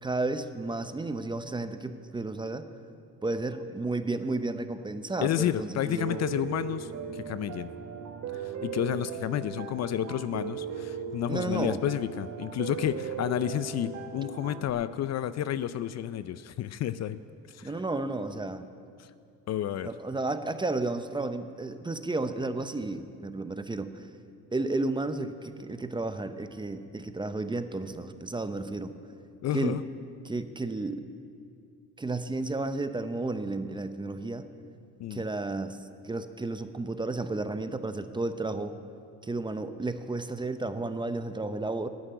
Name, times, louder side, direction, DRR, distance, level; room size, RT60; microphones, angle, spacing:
voice 1, 0.0-2.7 3.2-6.2 11.3-11.8 17.6-18.7 19.8-24.1 24.5-28.9 29.5-29.8 30.2-31.0 32.0-34.4 35.1-35.8 36.0-38.8 39.2-41.9, right 2 dB, 15° right, 10 dB, 0.6 m, -32 dB
voice 2, 5.2-7.7 8.3-17.2 17.5-17.7 19.0-19.1 19.5-19.9 29.4-29.8 35.0-35.2, left 11 dB, 50° left, 14 dB, 0.5 m, -31 dB
Piano, 6.0-14.7, right 7 dB, 50° right, 1.0 m, -38 dB
11.5 x 8.9 x 9.1 m, 2.6 s
cardioid pair, 105°, 35 cm